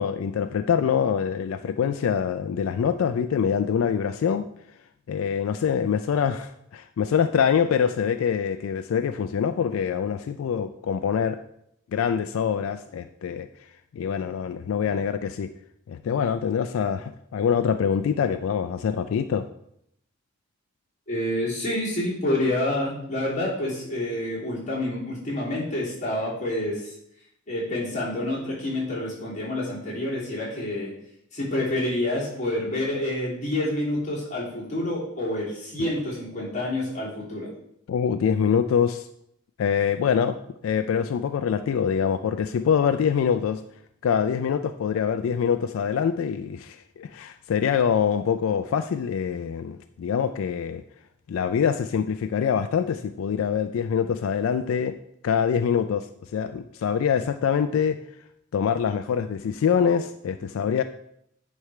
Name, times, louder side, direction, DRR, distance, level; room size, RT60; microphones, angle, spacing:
voice 1, 0.0-4.5 5.1-11.4 11.9-13.5 13.9-15.5 15.9-19.5 35.8-35.9 37.9-39.1 39.6-40.4 40.6-43.6 44.0-50.8 51.3-55.0 55.2-58.0 58.5-60.8, left 7 dB, 85° left, 9 dB, 0.3 m, -24 dB
voice 2, 21.1-26.9 27.5-30.9 31.3-37.5, left 1 dB, 35° left, -6 dB, 2.8 m, -28 dB
9.5 x 3.3 x 4.8 m, 0.74 s
head